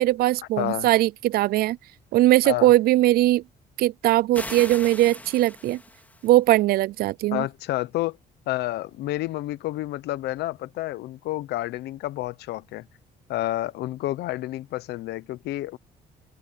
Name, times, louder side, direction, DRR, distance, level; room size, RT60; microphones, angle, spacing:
voice 1, 0.0-1.8 2.1-3.4 3.8-5.8 6.2-7.4, right 15 dB, 65° right, 0.4 m, -20 dB
voice 2, 0.6-0.9 2.4-2.7 7.3-8.2 8.5-12.9 13.3-15.8, left 16 dB, 80° left, 1.0 m, -29 dB
sound 1, 4.3-6.4, left 1 dB, 10° left, 2.8 m, -39 dB
cardioid pair, 110°, 17 cm